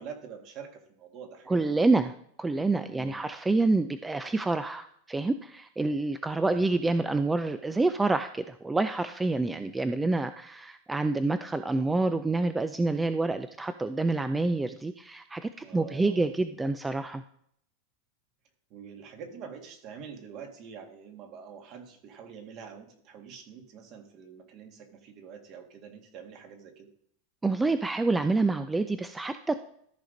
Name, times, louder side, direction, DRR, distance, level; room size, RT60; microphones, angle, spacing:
voice 1, 0.0-2.0 2.9-3.3 6.3-6.7 9.5-9.7 15.6-16.2 18.7-26.9, right 7 dB, 45° right, 4 dB, 1.8 m, -46 dB
voice 2, 1.5-2.1 2.4-17.2 27.4-29.7, right 3 dB, 10° right, 11 dB, 0.4 m, -27 dB
13.5 x 5.0 x 3.9 m, 0.67 s
supercardioid pair, 130°, 0 cm